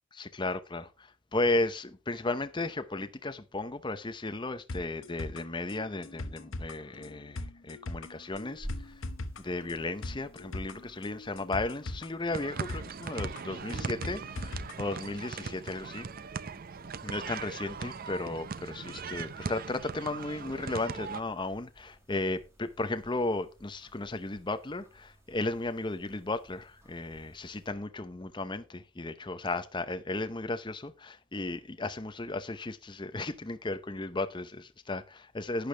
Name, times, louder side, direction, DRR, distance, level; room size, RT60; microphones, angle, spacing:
voice 1, 0.2-9.0 9.4-16.1 17.0-35.7, left 2 dB, 20° left, 0.7 m, -35 dB
sound 1, 4.7-14.7 15.0-15.1, left 2 dB, 65° left, 1.0 m, -40 dB
sound 2, 8.1-27.7, equal, 10° right, 2.1 m, -54 dB
sound 3, 12.3-21.2, right 5 dB, 45° right, 0.5 m, -39 dB
11.5 x 8.6 x 3.3 m
head